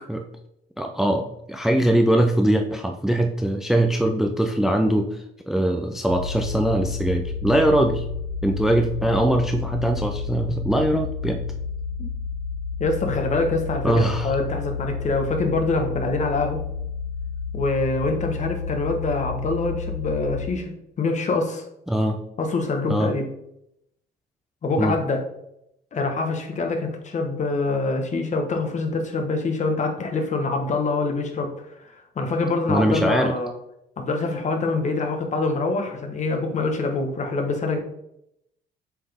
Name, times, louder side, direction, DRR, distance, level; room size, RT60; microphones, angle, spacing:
voice 1, 0.8-8.1 8.4-11.4 13.8-14.3 21.9-22.2 22.9-23.1 24.8-25.0 32.7-33.3, right 1 dB, ahead, 5 dB, 0.4 m, -22 dB
sound 1, 6.1-20.5, left 5 dB, 70° right, 1.7 m, -31 dB
voice 2, 12.8-16.6 17.5-20.7 21.0-21.6 22.4-23.2 24.6-25.2 25.9-31.5 31.8-33.5 34.0-37.8, left 3 dB, 40° left, 4 dB, 1.2 m, -25 dB
7.4 x 4.2 x 3.4 m, 0.80 s
cardioid pair, 110°, 19 cm